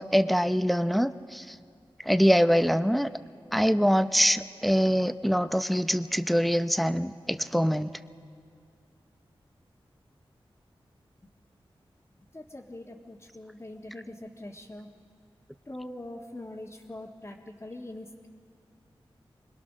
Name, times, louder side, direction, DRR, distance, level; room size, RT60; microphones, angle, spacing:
voice 1, 0.0-1.6 2.0-3.1 3.5-7.9, equal, ahead, 11 dB, 0.7 m, -24 dB
voice 2, 12.3-14.9 15.6-18.3, left 1 dB, 25° left, -3 dB, 1.6 m, -43 dB
25.5 x 20.5 x 6.3 m, 2.3 s
cardioid pair, 45°, 10 cm